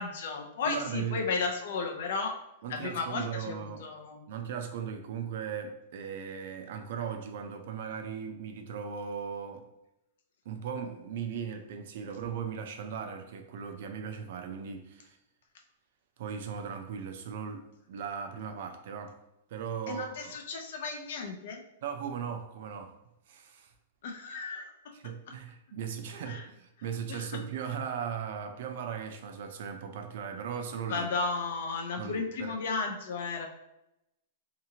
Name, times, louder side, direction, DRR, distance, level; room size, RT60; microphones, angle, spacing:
voice 1, 0.0-2.4 2.7-4.2 19.9-21.6 24.0-24.7 26.3-26.5 27.1-27.3 30.9-33.5, left 4 dB, 55° left, 4 dB, 0.5 m, -34 dB
voice 2, 0.7-1.3 2.6-3.8 4.3-9.7 10.5-15.2 16.2-19.2 19.5-20.4 21.8-22.9 23.3-23.7 24.9-31.1 32.0-32.6, right 7 dB, 50° right, 5 dB, 0.4 m, -38 dB
2.8 x 2.4 x 2.7 m, 0.87 s
supercardioid pair, 175°, 0 cm